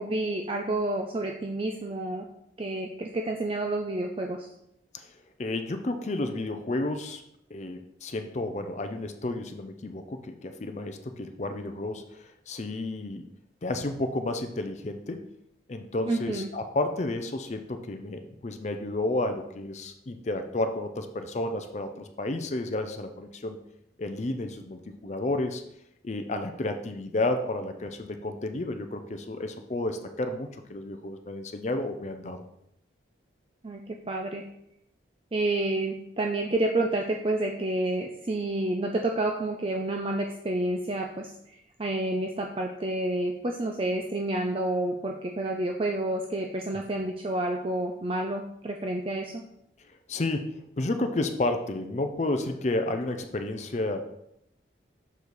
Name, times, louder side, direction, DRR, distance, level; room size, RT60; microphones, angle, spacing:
voice 1, 0.0-2.3 2.6-4.5 16.1-16.5 33.6-34.4 35.3-41.3 41.8-49.4, right 2 dB, 30° right, 2 dB, 0.4 m, -29 dB
voice 2, 5.4-7.2 7.5-13.2 13.6-15.2 15.7-23.6 24.0-25.6 26.0-32.4 50.1-54.1, left 2 dB, 40° left, 7 dB, 0.5 m, -31 dB
6.7 x 4.1 x 4.7 m, 0.78 s
head